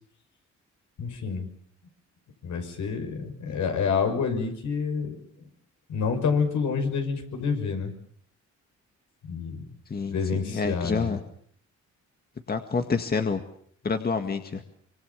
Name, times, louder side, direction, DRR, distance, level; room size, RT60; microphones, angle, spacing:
voice 1, 1.0-1.4 2.4-5.2 5.9-7.9 9.3-9.6 10.1-11.1, left 5 dB, 70° left, 5 dB, 6.0 m, -28 dB
voice 2, 9.9-11.2 12.5-13.4 13.8-14.6, left 4 dB, 30° left, 7 dB, 2.0 m, -28 dB
26.0 x 24.0 x 7.1 m, 0.62 s
cardioid pair, 90°, 30 cm